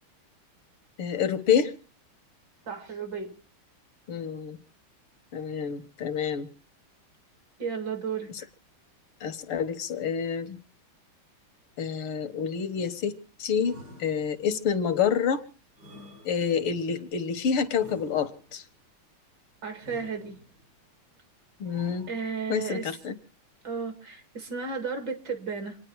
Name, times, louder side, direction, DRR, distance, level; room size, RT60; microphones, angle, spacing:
voice 1, 1.0-1.7 4.1-4.6 5.3-6.5 8.3-8.4 9.2-10.6 11.8-15.5 16.3-18.6 21.6-22.1 22.5-23.2, left 7 dB, 85° left, 2.2 m, -28 dB
voice 2, 2.7-3.3 7.6-8.5 19.6-20.4 22.1-22.9 23.6-25.8, right 5 dB, 55° right, 2.9 m, -33 dB
sound 1, 13.6-14.7 15.7-16.8 17.7-18.7 19.8-20.7 21.6-22.6, left 1 dB, 70° right, 6.4 m, -50 dB
27.5 x 10.0 x 4.7 m
omnidirectional pair, 2.4 m